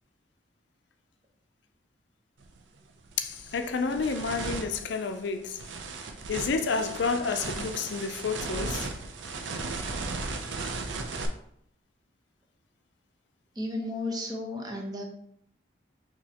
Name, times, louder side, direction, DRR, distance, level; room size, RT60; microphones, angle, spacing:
sound 1, 2.4-2.6 3.1-11.3, right 3 dB, 80° right, 0.6 m, -36 dB
voice 1, 3.2-5.6 6.3-8.9, left 4 dB, 65° left, 0.4 m, -30 dB
voice 2, 13.6-15.0, left 1 dB, 20° right, 0.8 m, -33 dB
6.2 x 2.9 x 2.8 m
head